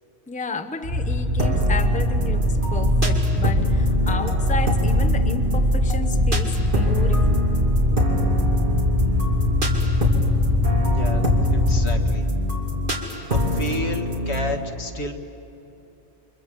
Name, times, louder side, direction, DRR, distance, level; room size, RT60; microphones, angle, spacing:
voice 1, 0.3-7.4, left 3 dB, 10° left, 8 dB, 0.8 m, -32 dB
sound 1, 0.8-12.1, left 2 dB, 75° right, 2.9 m, -23 dB
sound 2, 1.4-14.5, equal, 50° right, 2.9 m, -23 dB
voice 2, 10.9-12.3 13.3-15.1, left 1 dB, 75° left, 4 dB, 1.9 m, -31 dB
29.5 x 25.0 x 7.4 m, 2.9 s
omnidirectional pair, 1.1 m